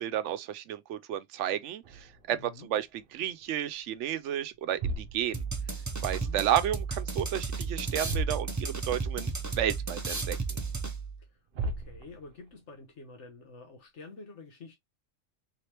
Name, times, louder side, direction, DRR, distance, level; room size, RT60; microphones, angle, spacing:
voice 1, 0.0-2.4 2.7-5.4 6.0-10.4, right 11 dB, 85° right, 0.9 m, -32 dB
sound 1, 1.8-3.5 3.8-4.1 4.6-6.4 6.7-7.4 7.6-7.7 8.0-9.0 9.4-9.5 10.1-10.2 11.2-11.3 11.5-12.5, right 2 dB, 55° right, 0.9 m, -38 dB
voice 2, 2.3-2.7 6.0-6.5 11.2-14.8, left 3 dB, 80° left, 1.3 m, -49 dB
sound 2, 5.3-11.2, right 4 dB, 20° right, 0.5 m, -33 dB
3.6 x 3.2 x 2.9 m
omnidirectional pair, 1.2 m